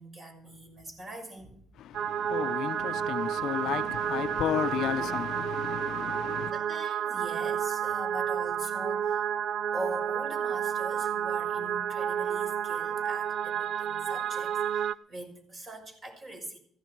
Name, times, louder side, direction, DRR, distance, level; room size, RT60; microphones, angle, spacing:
voice 1, 0.0-1.6 6.5-9.3 9.7-16.6, right 1 dB, 40° right, 6.3 m, -42 dB
voice 2, 1.8-6.5, left 11 dB, 75° left, 0.7 m, -33 dB
sound 1, 1.9-14.9, right 9 dB, 60° right, 0.5 m, -31 dB
16.0 x 15.0 x 4.6 m
cardioid pair, 105°, 0 cm